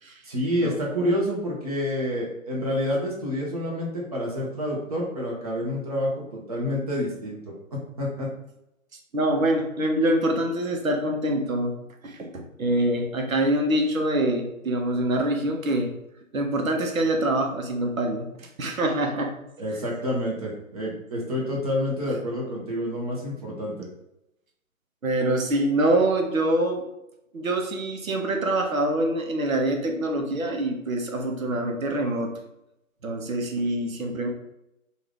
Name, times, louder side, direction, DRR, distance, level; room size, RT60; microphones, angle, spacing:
voice 1, 0.2-8.3 19.6-23.9, equal, 30° right, -3 dB, 0.7 m, -28 dB
voice 2, 9.1-11.7 12.0-15.9 16.3-19.3 25.0-26.8 27.3-32.3 33.0-34.3, right 1 dB, 80° right, 3 dB, 0.9 m, -25 dB
2.7 x 2.5 x 3.4 m, 0.84 s
figure-of-eight pair, 135°, 41 cm